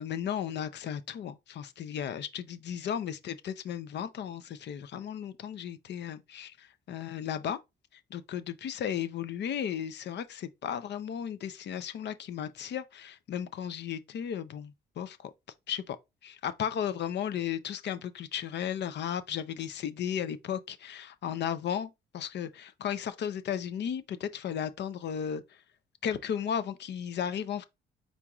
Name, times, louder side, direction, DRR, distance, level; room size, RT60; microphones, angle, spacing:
voice 1, 0.0-7.6 7.9-15.3 15.7-16.0 16.2-25.6 26.0-27.6, left 9 dB, 60° left, 0.6 m, -35 dB
4.5 x 4.0 x 2.4 m
cardioid pair, 90°, 20 cm